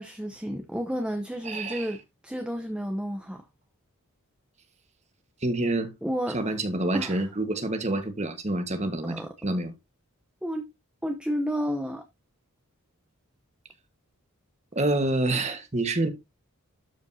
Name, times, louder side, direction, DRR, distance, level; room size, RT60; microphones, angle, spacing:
voice 1, 0.0-2.0 2.2-3.4 6.0-6.4 6.9-7.2 9.0-9.3 10.4-10.6 11.0-12.0, equal, 5° right, 0.7 m, -31 dB
voice 2, 1.4-1.9 5.4-5.9 6.3-9.7 14.7-16.1, right 2 dB, 30° right, 1.3 m, -27 dB
12.5 x 5.2 x 2.7 m
head